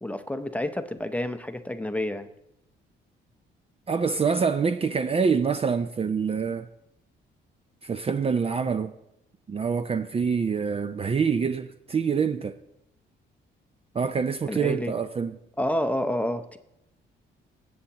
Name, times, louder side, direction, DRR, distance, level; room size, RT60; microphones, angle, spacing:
voice 1, 0.0-2.3 14.5-14.9 15.6-16.6, left 1 dB, 5° left, 0.7 m, -29 dB
voice 2, 3.9-6.7 7.8-8.9 9.5-12.5 13.9-15.4, right 6 dB, 30° right, 0.5 m, -26 dB
20.0 x 7.9 x 2.9 m
cardioid pair, 90°, 20 cm